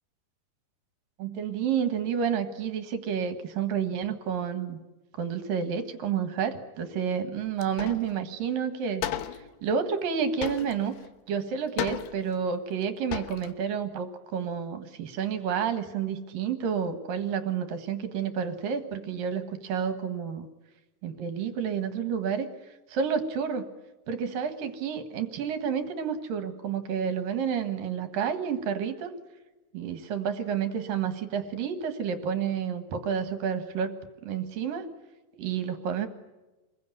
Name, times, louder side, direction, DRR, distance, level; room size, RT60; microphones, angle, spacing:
voice 1, 1.2-4.8 5.2-9.1 9.3-10.9 11.3-20.5 21.0-23.7 24.1-29.1 29.7-33.9 34.2-34.9 35.3-36.1, right 7 dB, 65° right, 9 dB, 3.0 m, -30 dB
sound 1, 7.6-8.1 8.4-8.5 9.0-9.5 10.4-11.1 11.8-12.4 12.8-12.9 13.1-13.5, left 11 dB, 75° left, 3.1 m, -34 dB
27.0 x 21.5 x 9.6 m, 1.1 s
omnidirectional pair, 4.7 m